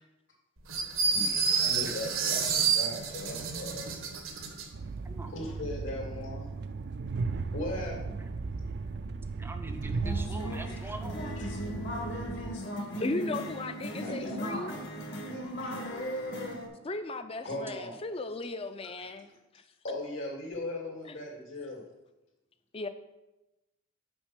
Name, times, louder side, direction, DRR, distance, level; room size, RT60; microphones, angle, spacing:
sound 1, 0.7-4.7, right 6 dB, 85° right, 1.1 m, -29 dB
voice 1, 1.1-3.9 5.3-6.5 7.5-8.1 10.6-10.8 11.4-11.5 14.0-14.3 15.6-15.7 17.4-18.0 19.8-21.8, left 1 dB, 75° left, 2.4 m, -38 dB
Train, 4.7-12.5, right 4 dB, 55° right, 0.4 m, -36 dB
voice 2, 5.0-5.4 9.4-11.2, right 1 dB, 10° right, 0.6 m, -43 dB
sound 2, 10.0-16.7, equal, 60° left, 1.4 m, -37 dB
voice 3, 13.0-14.7 16.8-19.4 21.0-21.1 22.7-22.9, left 2 dB, 30° left, 0.4 m, -36 dB
6.2 x 5.3 x 6.5 m
head